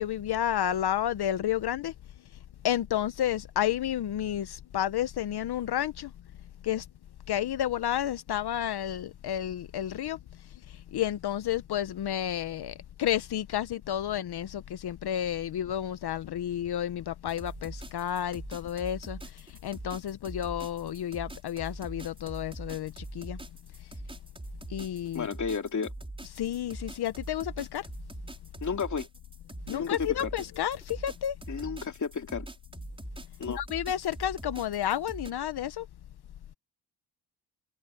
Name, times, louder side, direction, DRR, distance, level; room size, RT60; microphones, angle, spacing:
voice 1, 0.0-1.9 2.6-6.1 6.6-6.8 7.3-10.2 10.9-19.2 19.6-23.4 24.7-25.3 26.3-27.8 29.7-31.4 33.5-35.9, left 11 dB, 60° left, 0.9 m, -31 dB
sound 1, 17.3-35.3, right 2 dB, 10° right, 5.8 m, -43 dB
voice 2, 25.1-25.9 28.6-29.1 29.7-30.1 31.5-32.5 33.4-33.6, left 6 dB, 40° left, 2.8 m, -32 dB
cardioid pair, 95°, 43 cm